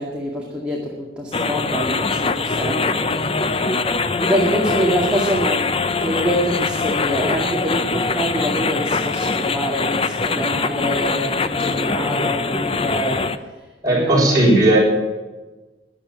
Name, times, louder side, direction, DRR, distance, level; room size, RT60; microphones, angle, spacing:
voice 1, 0.0-3.6 4.2-14.8, equal, 5° right, -3 dB, 2.0 m, -26 dB
sound 1, 1.3-13.4, left 4 dB, 35° left, 0.7 m, -22 dB
voice 2, 13.8-14.8, right 1 dB, 20° right, -4 dB, 6.3 m, -15 dB
13.5 x 9.9 x 9.0 m, 1.2 s
head